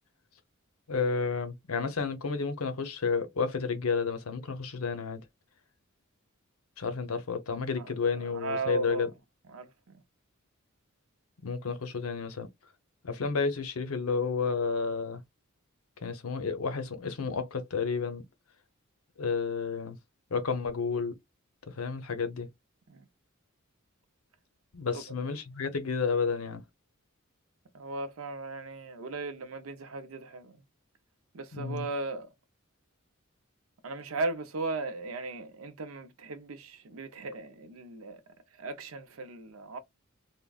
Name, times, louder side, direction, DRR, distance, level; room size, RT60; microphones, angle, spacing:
voice 1, 0.9-5.2 6.8-9.1 11.4-12.5 13.0-15.2 16.0-18.2 19.2-20.0 20.3-21.2 21.7-22.5 24.7-26.6 31.5-31.9, left 5 dB, 85° left, 0.7 m, -31 dB
voice 2, 8.3-9.1 9.5-10.0 22.9-23.1 24.9-25.0 27.7-30.6 31.3-32.3 33.8-39.8, right 3 dB, 80° right, 0.6 m, -37 dB
3.4 x 2.2 x 2.3 m
head